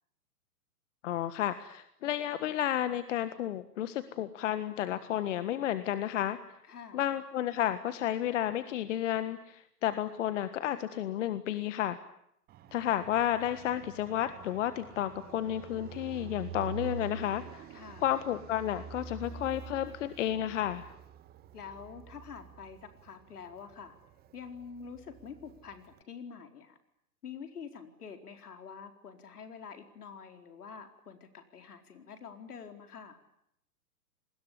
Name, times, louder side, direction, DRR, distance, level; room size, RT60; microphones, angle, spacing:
voice 1, 1.0-6.4 6.9-12.0 12.7-17.6 18.0-20.9, left 11 dB, 50° left, 12 dB, 1.6 m, -32 dB
voice 2, 6.6-7.0 17.7-18.1 21.5-24.0 24.3-26.8 27.2-33.2, left 6 dB, 75° left, 6 dB, 4.5 m, -47 dB
Fixed-wing aircraft airplane, 12.5-26.0, right 8 dB, 20° right, 1.6 m, -47 dB
28.0 x 20.5 x 10.0 m, 0.75 s
hypercardioid pair, 130°, 46 cm